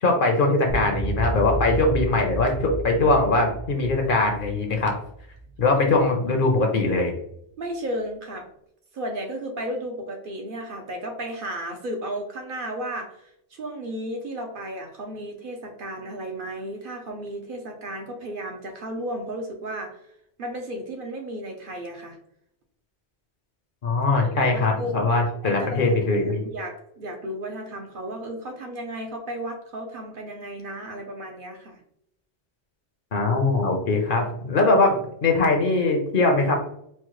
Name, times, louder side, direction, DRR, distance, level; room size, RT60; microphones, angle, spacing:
voice 1, 0.0-4.9 5.6-7.1 23.8-26.4 33.1-36.6, left 3 dB, 55° left, 3 dB, 0.7 m, -21 dB
sound 1, 0.7-6.1, right 1 dB, 20° right, 0.3 m, -31 dB
voice 2, 7.6-8.5 8.9-20.0 20.4-22.2 24.1-25.1 25.4-31.8, right 1 dB, 60° right, 3 dB, 0.7 m, -34 dB
4.3 x 2.1 x 3.0 m, 0.73 s
omnidirectional pair, 1.1 m